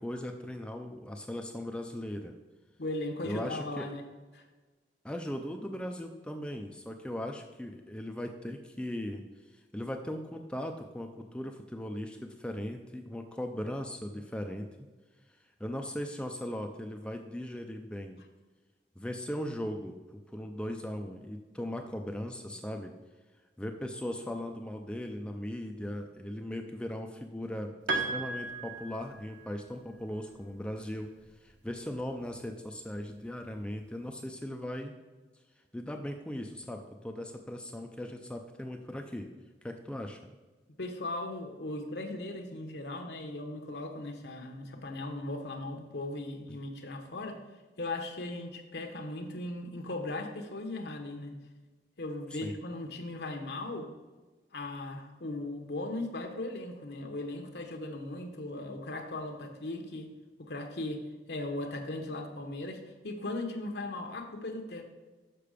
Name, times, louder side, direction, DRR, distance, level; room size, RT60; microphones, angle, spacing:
voice 1, 0.0-2.3 3.2-3.9 5.0-9.2 9.7-14.9 15.6-18.2 19.0-22.9 23.6-31.1 31.4-35.0 35.7-39.3 39.6-40.2 52.3-52.5, left 1 dB, 5° left, 4 dB, 0.4 m, -38 dB
voice 2, 2.8-4.0 4.3-4.4 40.8-47.4 47.8-51.3 52.0-53.9 54.5-60.1 60.4-64.8, left 2 dB, 70° left, 4 dB, 1.0 m, -38 dB
Piano, 27.9-29.6, right 3 dB, 85° right, 0.9 m, -35 dB
6.8 x 5.6 x 5.0 m, 1.3 s
head